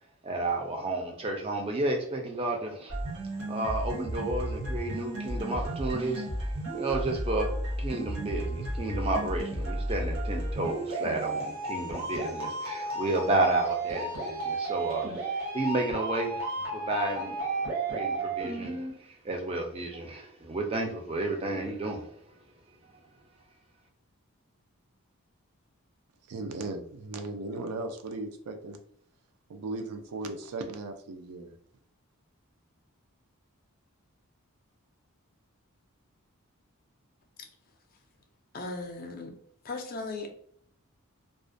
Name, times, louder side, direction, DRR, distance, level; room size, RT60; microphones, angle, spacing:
voice 1, 0.2-3.0 3.5-6.3 6.7-16.5 16.7-22.1 22.8-22.9, right 2 dB, 25° right, 2 dB, 0.4 m, -32 dB
sound 1, 2.9-18.9, right 2 dB, 70° right, 0.8 m, -33 dB
voice 2, 26.3-28.8 29.5-31.5, right 2 dB, 85° right, 6 dB, 0.4 m, -37 dB
voice 3, 38.5-39.3 39.6-40.3, left 3 dB, 40° left, 4 dB, 0.4 m, -37 dB
2.3 x 2.1 x 2.5 m, 0.62 s
head